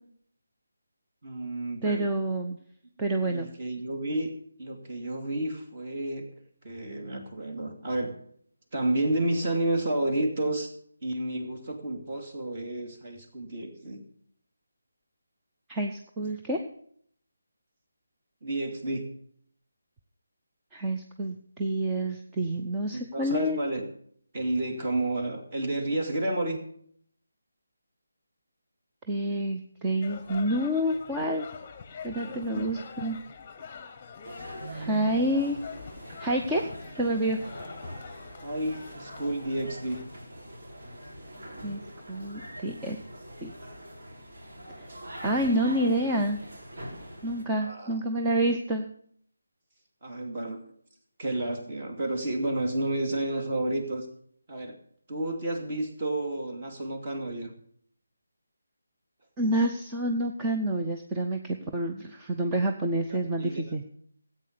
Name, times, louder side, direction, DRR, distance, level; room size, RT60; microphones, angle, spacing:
voice 1, 1.2-2.1 3.2-4.3 4.6-6.3 6.6-8.1 8.7-10.7 11.0-14.0 18.4-19.1 22.9-23.8 24.3-26.6 32.2-32.8 34.6-35.2 38.4-40.0 47.6-48.0 50.0-50.6 51.2-54.1 54.5-54.8 55.1-57.5 63.1-63.6, right 1 dB, 30° right, 3 dB, 2.5 m, -31 dB
voice 2, 1.8-2.6 3.0-3.5 15.7-16.6 20.7-23.6 29.1-31.4 32.0-33.2 34.7-35.6 36.2-36.7 37.0-37.4 41.6-41.8 42.1-43.0 43.4-43.5 44.8-44.9 45.2-46.4 47.2-48.9 59.4-63.8, right 1 dB, 10° right, 2 dB, 0.7 m, -28 dB
sound 1, 30.0-40.1, left 6 dB, 20° left, 1.0 m, -45 dB
sound 2, 34.2-47.4, equal, 60° right, 4.6 m, -43 dB
14.0 x 8.5 x 6.8 m, 0.63 s
figure-of-eight pair, 170°, 0 cm